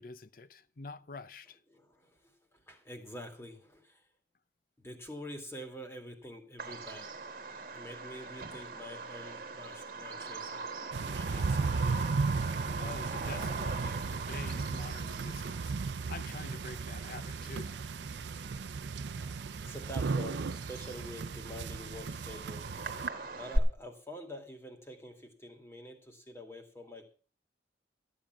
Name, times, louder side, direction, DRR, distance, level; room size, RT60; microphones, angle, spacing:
voice 1, 0.0-1.6 12.8-17.8, left 3 dB, 50° left, 0.7 m, -47 dB
voice 2, 1.7-4.1 4.8-7.1 7.7-10.7 10.9-11.6 15.1-15.4 19.3-22.7 23.4-27.1, equal, 15° left, 2.3 m, -47 dB
Bird vocalization bird call bird song, 6.6-23.6, right 2 dB, 50° right, 1.7 m, -41 dB
sound 1, 10.9-23.1, right 4 dB, 80° right, 0.5 m, -35 dB
14.0 x 8.8 x 6.0 m
head